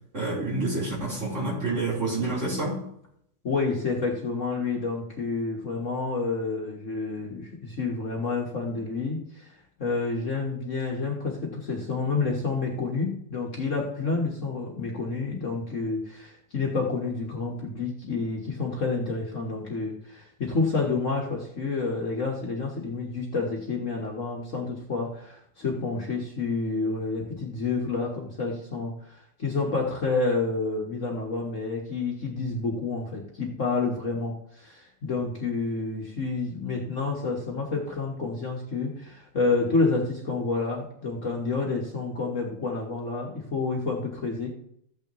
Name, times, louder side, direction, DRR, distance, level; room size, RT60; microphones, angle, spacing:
voice 1, 0.1-2.8, right 2 dB, 40° right, -6 dB, 4.2 m, -28 dB
voice 2, 3.4-44.5, left 4 dB, 45° left, -1 dB, 1.6 m, -29 dB
14.5 x 8.8 x 3.0 m, 0.72 s
omnidirectional pair, 2.0 m